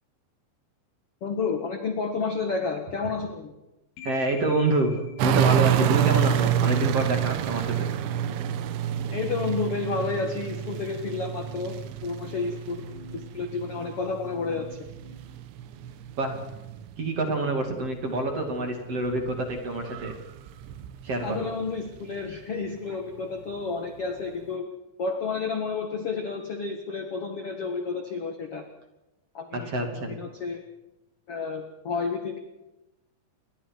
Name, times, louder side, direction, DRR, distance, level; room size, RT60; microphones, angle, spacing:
voice 1, 1.2-3.6 9.1-11.7 12.0-12.9 13.1-14.9 21.2-24.7 25.0-28.7 29.3-30.6 31.3-32.4, left 4 dB, 65° left, 5 dB, 1.4 m, -31 dB
sound 1, 4.0-16.0, left 6 dB, 85° left, 4.6 m, -49 dB
voice 2, 4.0-4.9 5.2-7.9 16.2-16.3 17.0-20.1 21.0-21.5 29.5-30.1, right 2 dB, 40° right, 3 dB, 2.9 m, -27 dB
sound 2, 5.2-17.2 17.5-22.4 22.9-23.0, right 10 dB, 85° right, 3.6 m, -28 dB
29.0 x 22.5 x 4.6 m, 0.96 s
omnidirectional pair, 5.3 m